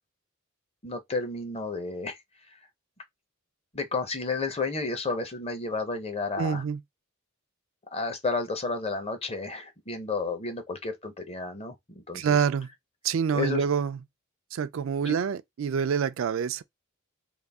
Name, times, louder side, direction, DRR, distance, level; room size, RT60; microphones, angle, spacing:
voice 1, 0.8-2.2 3.7-6.6 7.9-12.4 13.3-13.6 15.0-15.1, left 3 dB, 30° left, 0.7 m, -32 dB
voice 2, 6.4-6.8 12.1-12.7 13.0-14.0 14.5-16.6, right 7 dB, 65° right, 0.4 m, -26 dB
3.8 x 2.3 x 3.4 m
head